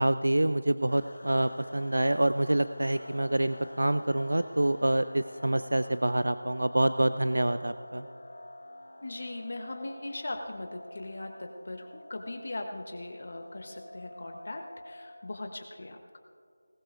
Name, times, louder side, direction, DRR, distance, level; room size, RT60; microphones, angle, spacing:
voice 1, 0.0-8.1, right 1 dB, 85° right, 12 dB, 0.4 m, -26 dB
sound 1, 0.9-15.4, left 1 dB, 70° left, 2.2 m, -48 dB
voice 2, 9.0-16.2, left 2 dB, 45° left, 4 dB, 1.0 m, -39 dB
19.5 x 19.0 x 2.5 m, 2.4 s
figure-of-eight pair, 175°, 0 cm